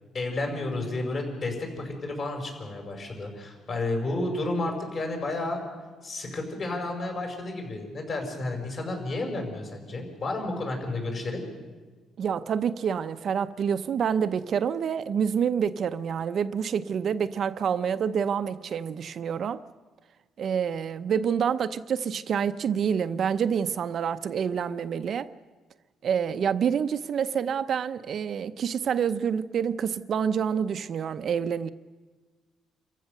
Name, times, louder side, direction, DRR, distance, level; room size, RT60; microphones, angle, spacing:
voice 1, 0.1-5.6 6.0-11.4, left 2 dB, 40° left, 5.3 m, -31 dB
voice 2, 12.2-19.6 20.4-25.3 26.0-31.7, right 7 dB, 50° right, 0.6 m, -27 dB
27.5 x 15.0 x 6.7 m
cardioid pair, 130°, 0 cm